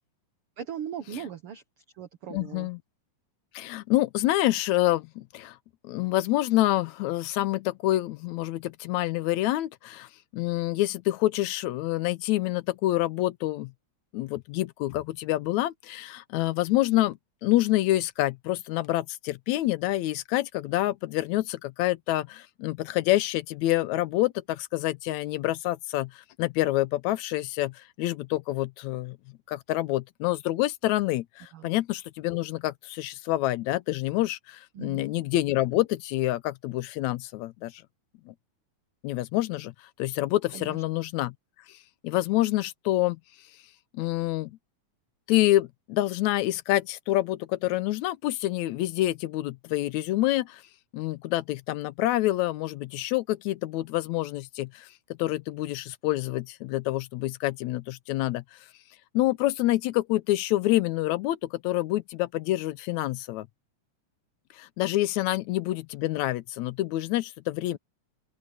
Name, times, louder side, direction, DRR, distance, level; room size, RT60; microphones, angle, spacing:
voice 1, 0.6-1.6 2.0-2.7 31.5-31.7 34.8-35.1 40.5-40.8, right 9 dB, 60° right, 1.8 m, -38 dB
voice 2, 2.3-2.8 3.5-5.6 5.8-13.7 14.1-29.2 29.5-37.8 38.3-38.4 39.0-39.7 40.0-41.3 42.0-43.2 43.9-44.6 45.3-50.6 50.9-54.9 55.2-58.4 59.1-63.5 64.5-67.8, left 16 dB, 75° left, 1.9 m, -27 dB
open air
omnidirectional pair, 3.5 m